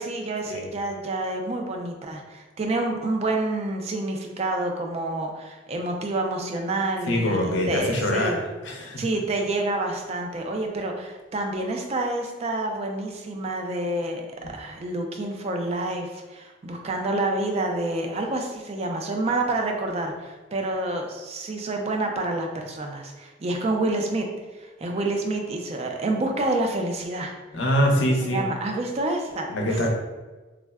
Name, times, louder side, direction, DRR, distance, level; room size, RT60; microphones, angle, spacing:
voice 1, 0.0-8.4 9.0-14.3 14.5-24.3 24.5-27.3 28.2-29.8, right 2 dB, 35° right, 3 dB, 0.3 m, -28 dB
voice 2, 7.1-9.0 27.5-28.4 29.5-29.9, equal, 75° left, 1 dB, 0.5 m, -24 dB
3.4 x 2.1 x 2.2 m, 1.3 s
head